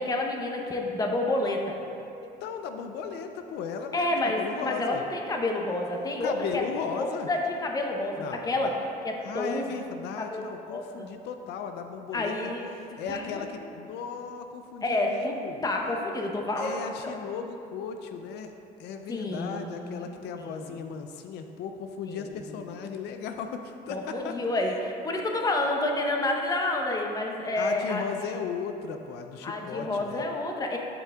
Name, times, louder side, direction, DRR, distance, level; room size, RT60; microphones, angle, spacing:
voice 1, 0.0-1.8 3.9-6.6 6.9-9.7 10.2-11.1 12.1-13.5 14.8-17.2 19.1-20.0 20.4-20.9 22.1-22.3 23.9-28.0 29.4-30.8, left 2 dB, 20° left, 1 dB, 0.8 m, -29 dB
voice 2, 2.2-5.0 6.2-7.3 8.2-8.7 9.2-12.3 12.8-15.6 16.6-18.5 18.8-24.4 27.6-30.2, left 6 dB, 80° left, 6 dB, 0.4 m, -36 dB
10.5 x 5.6 x 2.3 m, 2.8 s
cardioid pair, 110°, 17 cm